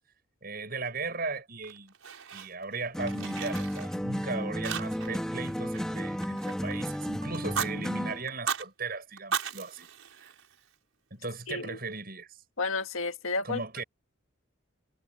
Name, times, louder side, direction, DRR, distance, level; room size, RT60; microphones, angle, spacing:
voice 1, 0.4-1.9 2.3-9.9 10.2-10.3 11.1-12.4 13.4-13.8, right 3 dB, 45° right, 8.0 m, -37 dB
Fire, 1.6-2.7 3.0-4.2 4.6-5.2 5.5-6.9 7.3-7.7 8.3-8.7 9.2-10.7, right 7 dB, 90° right, 6.1 m, -36 dB
sound 1, 2.9-8.3, equal, 5° left, 2.2 m, -33 dB
voice 2, 11.5-11.8 12.6-13.6, left 3 dB, 85° left, 1.7 m, -31 dB
head